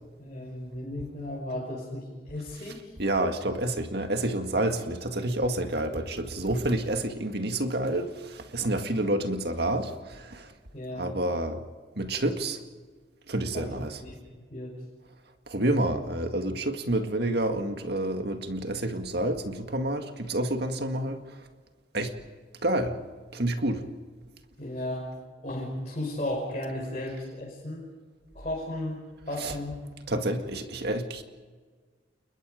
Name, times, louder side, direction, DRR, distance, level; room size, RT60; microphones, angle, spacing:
voice 1, 0.2-2.9 10.7-11.1 13.5-13.7 14.0-14.7 24.6-25.0 25.4-27.9 28.3-29.8 30.1-30.2, left 1 dB, 35° left, -4 dB, 5.6 m, -35 dB
voice 2, 3.0-10.5 10.9-11.6 12.0-12.6 13.3-14.0 15.5-21.2 21.9-22.1 22.6-23.0 23.3-23.8 29.4-29.5 30.1-31.2, right 1 dB, 55° right, 6 dB, 2.0 m, -29 dB
29.5 x 21.0 x 5.1 m, 1.5 s
head